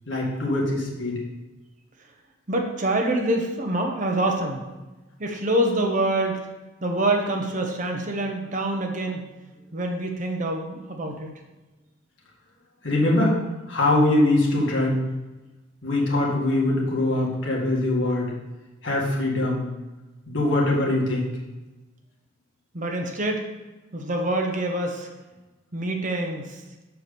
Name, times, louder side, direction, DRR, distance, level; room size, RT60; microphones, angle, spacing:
voice 1, 0.1-1.2 12.8-13.4 13.7-15.0 15.8-18.3 18.8-19.7 20.3-21.3, left 1 dB, 65° left, -4 dB, 2.1 m, -22 dB
voice 2, 2.5-4.6 5.2-6.4 6.8-9.2 9.7-11.3 22.7-23.4 23.9-25.1 25.7-26.6, right 1 dB, 35° right, 2 dB, 0.9 m, -25 dB
7.1 x 4.6 x 6.8 m, 1.1 s
head